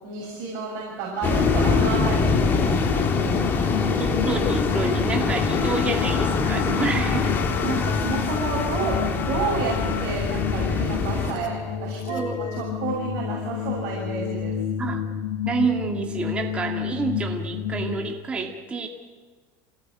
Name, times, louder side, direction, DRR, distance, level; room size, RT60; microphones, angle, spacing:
voice 1, 0.0-3.7 7.6-14.6, right 4 dB, 50° right, -4 dB, 7.0 m, -31 dB
sound 1, 1.2-11.3, left 4 dB, 25° left, 2.5 m, -24 dB
sound 2, 3.1-18.0, left 8 dB, 85° left, 4.5 m, -31 dB
voice 2, 3.9-7.4 7.6-7.7 12.1-12.3 14.8-15.0 15.4-18.9, right 4 dB, 15° right, 2 dB, 2.2 m, -28 dB
Telephone, 5.5-12.4, left 7 dB, 65° left, 4.7 m, -37 dB
27.0 x 19.0 x 9.3 m, 1.4 s
cardioid pair, 165°, 8 cm